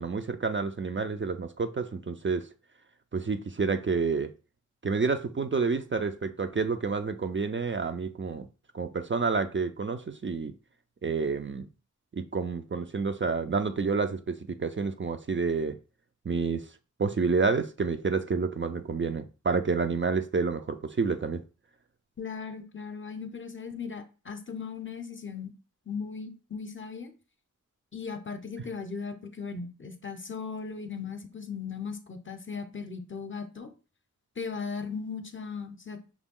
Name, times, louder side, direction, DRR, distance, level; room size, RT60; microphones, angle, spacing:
voice 1, 0.0-2.5 3.1-4.3 4.8-8.5 8.7-10.5 11.0-11.7 12.1-15.8 16.3-16.7 17.0-21.4, right 4 dB, 40° right, 0.4 m, -29 dB
voice 2, 22.2-25.5 25.9-27.1 27.9-33.7 34.4-36.0, left 5 dB, 40° left, 0.7 m, -37 dB
6.0 x 2.2 x 3.6 m
wide cardioid pair, 80°, 31 cm